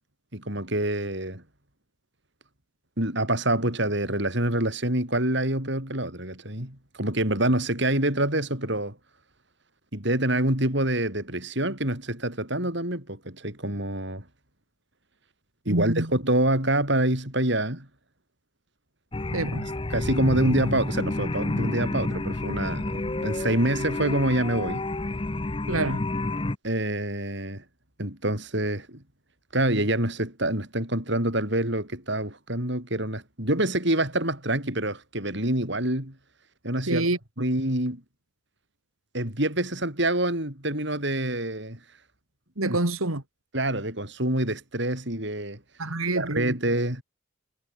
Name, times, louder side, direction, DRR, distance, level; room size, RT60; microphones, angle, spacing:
voice 1, 0.3-1.4 3.0-8.9 9.9-14.2 15.6-17.9 19.9-24.8 26.6-27.6 28.0-29.0 29.5-36.1 36.6-37.1 37.4-38.0 39.1-41.8 42.7-42.8 43.5-45.6 46.1-47.0, right 1 dB, 55° right, 6.5 m, -26 dB
voice 2, 15.7-16.1 19.3-19.7 25.7-26.0 36.9-37.2 42.6-43.2 45.8-46.5, right 2 dB, 90° right, 3.0 m, -27 dB
sound 1, 19.1-26.6, left 2 dB, 25° left, 0.7 m, -29 dB
head